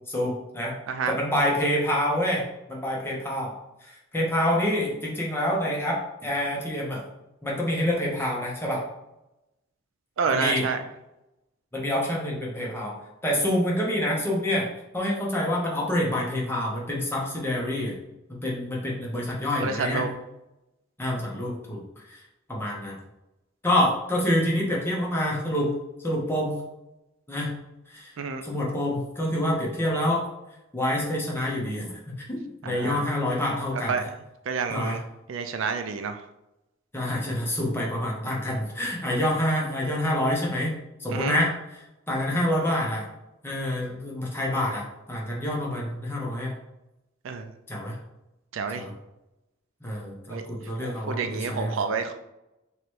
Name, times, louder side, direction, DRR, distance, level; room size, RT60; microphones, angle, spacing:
voice 1, 0.1-0.7 1.1-2.4 2.7-3.5 3.8-7.0 7.4-8.8 10.3-10.6 11.7-12.9 13.2-14.7 14.9-18.0 18.3-20.0 21.0-21.8 22.1-22.2 22.5-22.9 23.6-25.7 26.0-26.6 27.3-27.5 27.9-28.1 28.4-30.2 30.7-34.0 34.7-35.0 36.9-41.5 42.1-43.0 43.4-46.5 47.7-47.9 48.7-48.9 49.8-51.8, left 1 dB, 10° left, -3 dB, 0.9 m, -27 dB
voice 2, 10.2-10.8 19.6-20.1 28.2-28.4 32.6-33.0 33.7-34.0 34.5-35.0 35.3-36.2 41.1-41.4 47.2-47.5 48.5-48.8 50.3-50.4 50.8-52.1, right 5 dB, 70° right, 8 dB, 0.4 m, -29 dB
3.1 x 2.9 x 4.6 m, 0.92 s
head